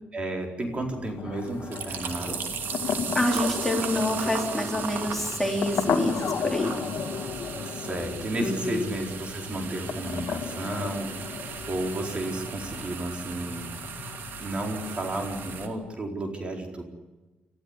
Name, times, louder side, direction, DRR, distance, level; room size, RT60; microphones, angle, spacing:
voice 1, 0.1-2.5 7.7-11.2 11.7-13.7 14.4-16.8, right 1 dB, 35° right, 2 dB, 4.4 m, -32 dB
sound 1, 0.7-15.7, left 6 dB, 65° left, 2.3 m, -35 dB
sound 2, 1.4-15.7, right 7 dB, 75° right, 2.7 m, -37 dB
voice 2, 3.1-6.8 8.4-8.9, left 1 dB, 5° left, 0 dB, 4.0 m, -27 dB
26.5 x 15.0 x 9.9 m, 1.2 s
cardioid pair, 115°, 3 cm